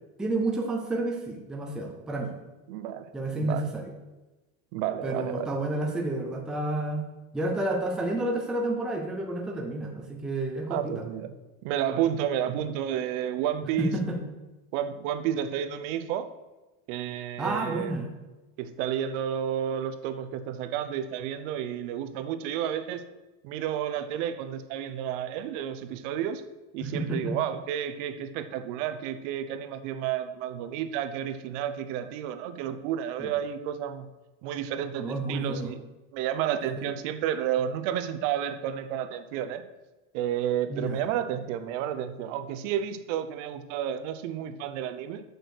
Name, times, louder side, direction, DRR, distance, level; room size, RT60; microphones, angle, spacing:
voice 1, 0.2-2.3 3.1-3.9 5.0-7.1 7.3-11.0 13.8-14.2 17.4-18.1 26.8-27.3 33.2-33.3 35.0-35.7 36.8-36.9 40.7-41.0, right 2 dB, ahead, 0 dB, 0.5 m, -30 dB
voice 2, 2.7-3.6 4.7-5.5 10.7-11.3 11.6-13.9 14.7-16.3 16.9-17.9 18.6-23.0 23.4-26.4 26.7-34.1 34.4-35.8 36.1-39.6 40.1-45.2, right 10 dB, 60° right, 11 dB, 0.8 m, -31 dB
6.6 x 6.3 x 6.4 m, 1.1 s
cardioid pair, 180°, 42 cm